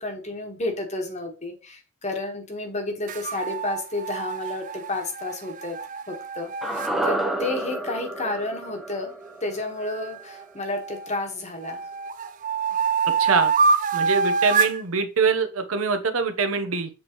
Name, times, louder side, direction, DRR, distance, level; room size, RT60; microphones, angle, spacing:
voice 1, 0.0-5.8 6.1-9.1 9.4-11.9, left 2 dB, 30° left, 1.4 m, -31 dB
sound 1, 3.1-6.9 9.9-11.1 11.6-14.8, right 5 dB, 35° right, 0.3 m, -26 dB
sound 2, 6.6-10.9 11.2-11.3, right 1 dB, ahead, 0.7 m, -30 dB
voice 2, 13.2-13.5 13.9-16.9, right 4 dB, 75° right, 0.9 m, -24 dB
7.3 x 4.4 x 3.0 m
head